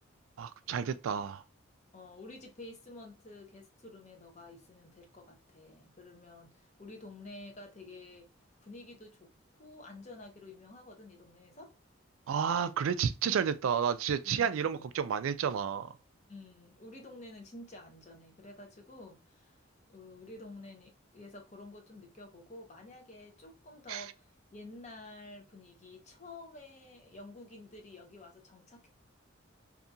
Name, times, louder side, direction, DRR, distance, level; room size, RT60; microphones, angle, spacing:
voice 1, 0.4-1.4 12.3-15.9 23.9-24.0, right 7 dB, 80° right, 0.3 m, -31 dB
voice 2, 1.9-8.3 8.6-9.3 9.6-11.7 14.2-14.9 16.3-19.6 19.9-28.9, left 2 dB, 35° left, 0.7 m, -50 dB
2.7 x 2.3 x 2.5 m
head